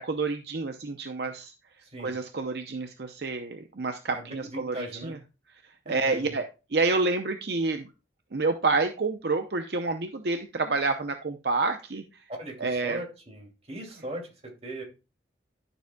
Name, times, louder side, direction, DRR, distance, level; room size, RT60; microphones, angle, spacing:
voice 1, 0.0-1.5 2.0-5.2 5.9-6.4 6.7-7.9 8.3-12.0 12.6-13.0, right 3 dB, 60° right, 7 dB, 0.7 m, -28 dB
voice 2, 1.8-2.2 4.1-5.2 5.8-6.4 12.3-14.8, right 1 dB, 35° right, 1 dB, 2.5 m, -39 dB
12.0 x 7.0 x 2.3 m, 0.30 s
head